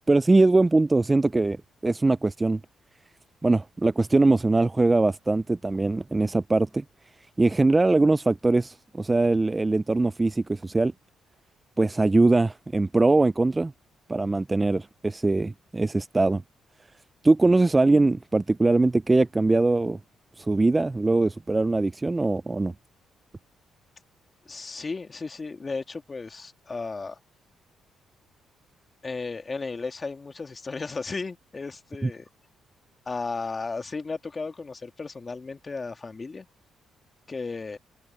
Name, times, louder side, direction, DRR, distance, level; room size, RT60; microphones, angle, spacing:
voice 1, 0.0-1.6 1.8-2.6 3.4-6.8 7.4-10.9 11.8-13.7 14.1-16.4 17.2-20.0 20.4-22.7 32.0-32.1, right 2 dB, 20° right, 0.3 m, -22 dB
voice 2, 24.5-27.2 29.0-32.3 33.1-36.5 37.3-37.8, left 4 dB, 30° left, 2.2 m, -34 dB
cardioid pair, 90°, 0 cm